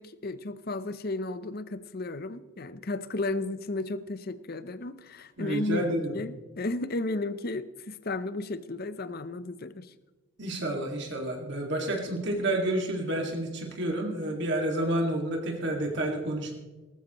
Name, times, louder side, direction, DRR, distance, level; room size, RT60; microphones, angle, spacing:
voice 1, 0.0-9.9, left 2 dB, 45° left, 14 dB, 0.7 m, -34 dB
voice 2, 5.4-6.2 10.4-16.5, right 1 dB, 55° right, 1 dB, 2.2 m, -29 dB
18.5 x 14.5 x 3.1 m, 1.2 s
head